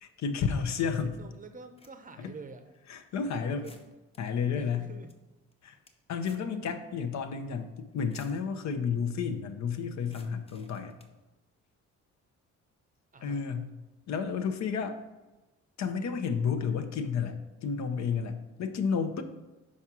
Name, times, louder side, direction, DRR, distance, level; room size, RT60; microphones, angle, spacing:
voice 1, 0.0-1.2 2.2-2.3 2.9-3.7 4.2-4.9 5.6-5.8 6.1-11.0 13.2-13.7 14.1-15.0 15.8-19.2, left 6 dB, 65° left, 7 dB, 0.7 m, -31 dB
voice 2, 0.8-2.6 3.6-3.8 4.5-5.1 13.1-13.5, right 4 dB, 25° right, 8 dB, 0.7 m, -47 dB
sound 1, 0.9-1.0 1.6-2.2 2.7-2.9 3.5-4.2 4.6-4.7 4.9-5.1 5.5-6.6 6.8-6.9 7.9-8.4 10.0-11.2, left 2 dB, 20° left, 0.8 m, -57 dB
4.9 x 4.2 x 5.9 m, 1.1 s
cardioid pair, 90°, 30 cm